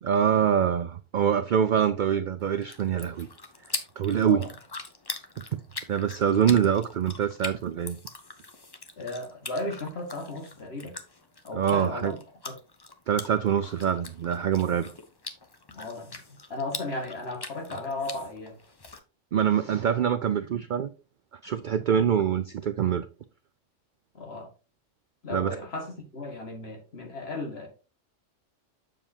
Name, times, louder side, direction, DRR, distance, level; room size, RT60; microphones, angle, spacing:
voice 1, 0.0-3.3 4.0-4.4 5.9-8.0 11.5-12.1 13.1-14.9 19.3-20.9 21.4-23.1 25.3-25.6, right 8 dB, 65° right, 0.5 m, -25 dB
sound 1, 2.4-19.0, left 3 dB, 25° left, 0.7 m, -42 dB
voice 2, 9.0-11.0 11.5-12.2 12.5-12.6 15.7-16.2 16.5-18.6 24.1-24.5 25.2-27.7, left 2 dB, 55° left, 2.1 m, -35 dB
7.4 x 6.7 x 2.8 m
omnidirectional pair, 1.3 m